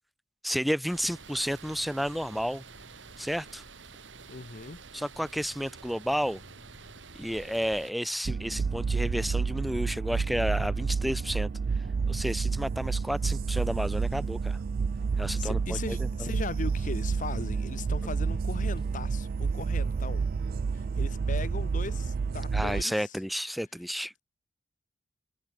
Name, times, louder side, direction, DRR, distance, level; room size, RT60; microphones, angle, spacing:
voice 1, 0.4-2.6 3.2-3.6 4.9-6.4 7.2-11.5 12.1-14.6 15.2-16.3 22.5-24.1, equal, ahead, 0.7 m, -31 dB
sound 1, 0.9-7.9, right 4 dB, 70° right, 2.2 m, -49 dB
sound 2, 1.0-19.4, equal, 25° left, 7.1 m, -62 dB
voice 2, 4.3-4.8 15.4-20.3 20.7-23.2, left 3 dB, 45° left, 1.0 m, -39 dB
sound 3, 8.2-22.8, right 5 dB, 50° right, 0.3 m, -30 dB
head